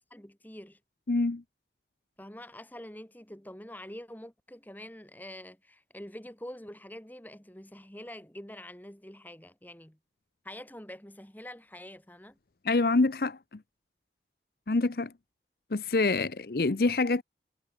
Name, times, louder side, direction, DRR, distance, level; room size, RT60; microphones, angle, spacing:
voice 1, 0.1-0.8 2.2-10.0 10.4-12.4, left 1 dB, 10° left, 1.9 m, -46 dB
voice 2, 1.1-1.4 12.6-13.4 14.7-15.1 15.7-17.2, left 3 dB, 55° left, 0.7 m, -26 dB
head